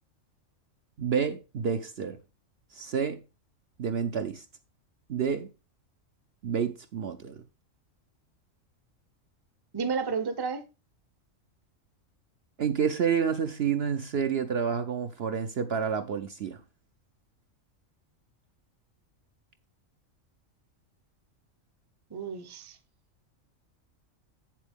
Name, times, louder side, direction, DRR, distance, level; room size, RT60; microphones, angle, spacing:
voice 1, 1.0-2.2 2.7-3.2 3.8-4.4 5.1-5.5 6.4-7.4 12.6-16.6, right 7 dB, 55° right, 0.8 m, -29 dB
voice 2, 9.7-10.6 22.1-22.8, right 5 dB, 20° right, 0.7 m, -31 dB
8.0 x 7.5 x 3.5 m
omnidirectional pair, 1.4 m